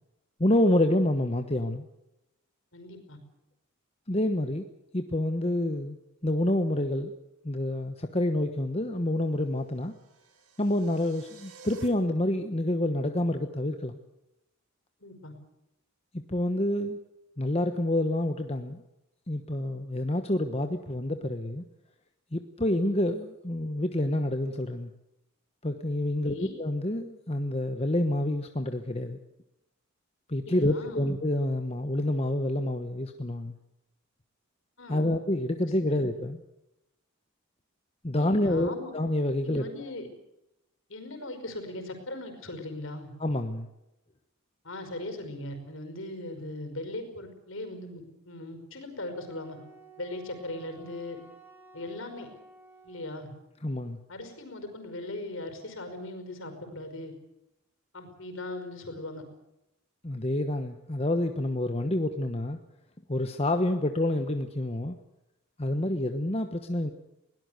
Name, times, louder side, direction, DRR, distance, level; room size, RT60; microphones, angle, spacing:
voice 1, 0.4-1.9 4.1-4.7 4.9-6.0 6.2-7.1 7.4-9.9 10.6-14.0 16.1-17.0 17.4-18.8 19.3-21.6 22.3-24.9 25.6-29.2 30.3-33.5 34.9-36.4 38.0-39.6 43.2-43.7 53.6-54.0 60.0-62.6 63.1-65.0 65.6-66.9, left 1 dB, 25° left, 6 dB, 1.1 m, -28 dB
voice 2, 2.7-3.2 15.0-15.3 26.2-26.5 30.5-31.1 34.8-35.2 35.9-36.3 38.2-38.9 39.4-40.1 40.9-43.1 44.6-49.6 50.0-51.2 51.7-52.3 52.8-53.3 54.1-57.1 57.9-59.2, left 2 dB, 60° left, 8 dB, 5.3 m, -39 dB
sound 1, 9.3-11.9, right 4 dB, 90° right, 4.2 m, -53 dB
Wind instrument woodwind instrument, 49.1-53.4, right 2 dB, 10° right, 3.2 m, -54 dB
22.0 x 18.0 x 8.1 m, 0.88 s
head